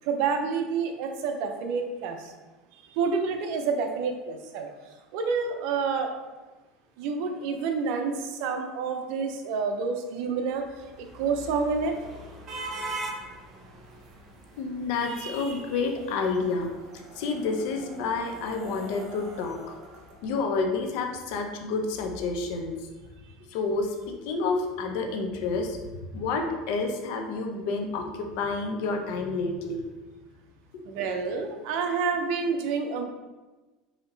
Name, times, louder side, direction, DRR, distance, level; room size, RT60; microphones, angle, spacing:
voice 1, 0.0-2.3 2.7-6.1 7.0-12.0 30.8-33.0, right 5 dB, 65° right, 5 dB, 0.6 m, -29 dB
sound 1, 10.4-20.7, right 2 dB, 40° right, 0.9 m, -42 dB
voice 2, 14.6-19.7 20.2-22.7 23.5-29.8, left 4 dB, 70° left, 3 dB, 0.7 m, -29 dB
4.2 x 2.9 x 3.9 m, 1.2 s
supercardioid pair, 130°, 0 cm